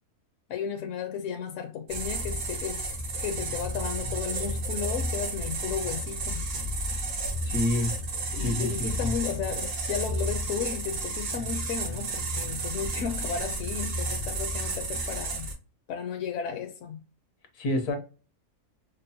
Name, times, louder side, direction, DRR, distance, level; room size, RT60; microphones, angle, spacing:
voice 1, 0.5-2.9 3.2-6.4 8.3-15.5 15.9-17.0, left 7 dB, 65° left, 0.8 m, -34 dB
sound 1, 1.9-15.5, right 2 dB, 80° right, 1.6 m, -32 dB
voice 2, 7.4-7.9 8.4-9.1 17.6-18.0, left 2 dB, 85° left, 1.5 m, -28 dB
5.2 x 2.1 x 2.7 m
omnidirectional pair, 1.6 m